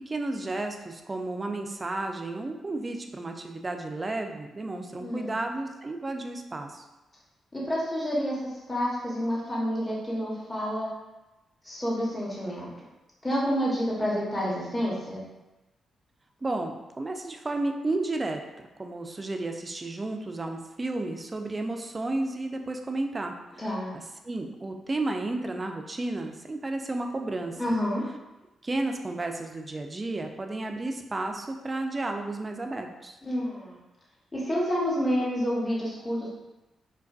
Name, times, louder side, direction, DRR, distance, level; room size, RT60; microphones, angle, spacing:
voice 1, 0.1-6.8 16.4-23.6 24.2-27.6 28.6-33.2, right 2 dB, 30° right, 4 dB, 0.3 m, -32 dB
voice 2, 5.0-5.3 7.5-10.9 11.6-12.7 13.2-15.2 23.6-23.9 27.6-28.0 33.2-33.8 34.3-36.3, equal, 15° left, -6 dB, 0.8 m, -29 dB
2.4 x 2.2 x 2.3 m, 1.0 s
supercardioid pair, 50°, 0 cm